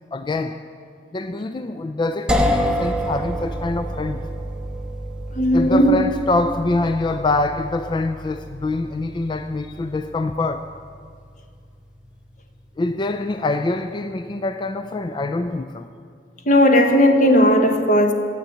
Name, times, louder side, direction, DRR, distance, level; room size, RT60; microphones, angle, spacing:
voice 1, 0.1-0.6 1.1-4.2 5.5-10.7 12.8-15.9, left 2 dB, 25° left, 0.3 m, -25 dB
sound 1, 2.3-12.1, equal, 5° right, 0.7 m, -28 dB
voice 2, 5.4-6.0 16.5-18.1, equal, 45° left, 1.0 m, -15 dB
10.0 x 7.8 x 9.0 m
head